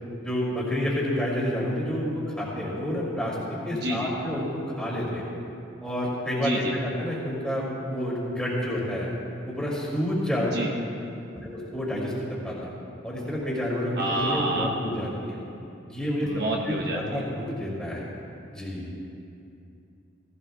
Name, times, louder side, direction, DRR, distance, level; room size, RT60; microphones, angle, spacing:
voice 1, 0.2-3.4 3.6-5.3 5.8-9.1 9.5-10.6 11.4-12.7 13.0-15.4 15.9-16.3 16.6-18.0 18.5-18.9, equal, 5° left, -6 dB, 2.5 m, -29 dB
voice 2, 3.8-4.1 6.4-6.8 10.5-10.7 14.0-14.7 16.2-17.2, right 1 dB, 55° right, -1 dB, 1.2 m, -28 dB
17.0 x 16.0 x 2.3 m, 2.7 s
head